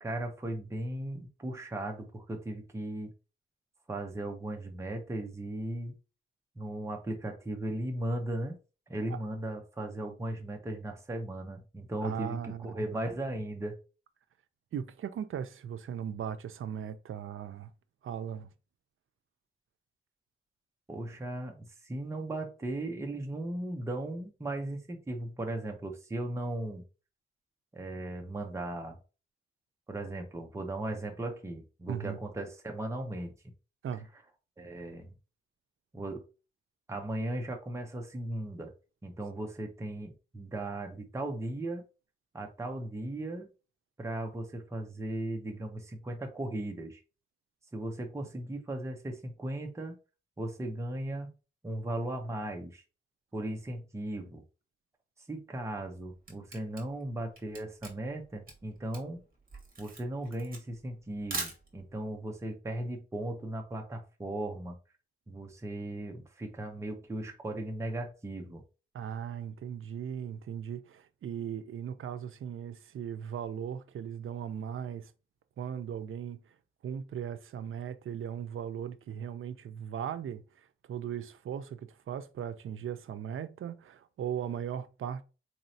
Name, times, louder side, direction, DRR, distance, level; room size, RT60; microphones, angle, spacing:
voice 1, 0.0-3.1 3.9-5.9 6.6-8.6 8.9-13.8 20.9-26.8 27.7-29.0 29.9-33.3 34.6-35.1 35.9-36.2 36.9-38.7 39.0-41.9 42.3-43.5 44.0-47.0 47.7-50.0 50.4-51.3 51.6-52.8 53.3-54.4 55.3-59.2 59.8-64.8 65.3-68.6, right 1 dB, 15° right, 0.6 m, -37 dB
voice 2, 12.0-12.7 14.7-17.7 18.0-18.5 31.9-32.2 33.8-34.1 68.9-75.1 75.6-76.5 76.8-85.2, right 8 dB, 90° right, 0.4 m, -38 dB
Camera, 55.8-62.1, right 3 dB, 45° right, 1.2 m, -42 dB
4.0 x 3.0 x 2.7 m
wide cardioid pair, 170°, 20 cm